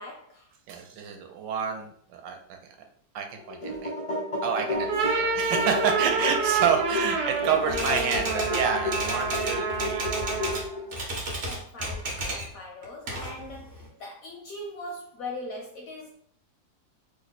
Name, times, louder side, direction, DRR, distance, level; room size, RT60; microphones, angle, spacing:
voice 1, 0.0-0.5 4.6-5.0 6.6-6.8 9.0-9.4 11.4-16.1, left 2 dB, 75° left, 0 dB, 0.8 m, -41 dB
voice 2, 0.7-2.6 3.1-3.9 4.4-10.6, right 7 dB, 85° right, 4 dB, 1.3 m, -29 dB
sound 1, 3.4-11.0, left 2 dB, 45° left, 0.4 m, -32 dB
sound 2, 4.7-10.8, right 4 dB, 70° right, 1.2 m, -29 dB
Typewriter, 7.7-10.7 10.9-12.5 12.8-13.9, right 1 dB, 50° right, 0.7 m, -33 dB
3.0 x 2.1 x 4.0 m, 0.63 s
omnidirectional pair, 2.0 m